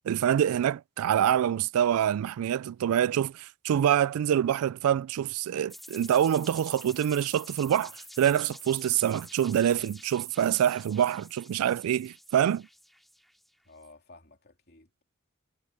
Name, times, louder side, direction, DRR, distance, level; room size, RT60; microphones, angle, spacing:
voice 1, 0.1-12.7, right 10 dB, 85° right, 0.3 m, -26 dB
sound 1, 5.7-13.5, equal, ahead, 2.3 m, -49 dB
voice 2, 13.6-15.0, left 2 dB, 50° left, 2.8 m, -54 dB
head